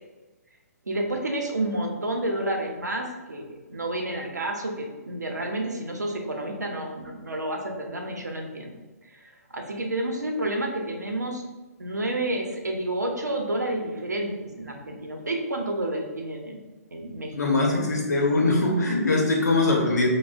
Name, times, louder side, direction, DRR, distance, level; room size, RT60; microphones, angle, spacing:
voice 1, 0.9-8.7 9.1-11.4 11.8-17.4, right 1 dB, 85° right, 2 dB, 0.6 m, -30 dB
voice 2, 17.3-20.1, left 2 dB, 75° left, 0 dB, 0.8 m, -22 dB
4.1 x 2.0 x 2.4 m, 1.2 s
figure-of-eight pair, 135°, 9 cm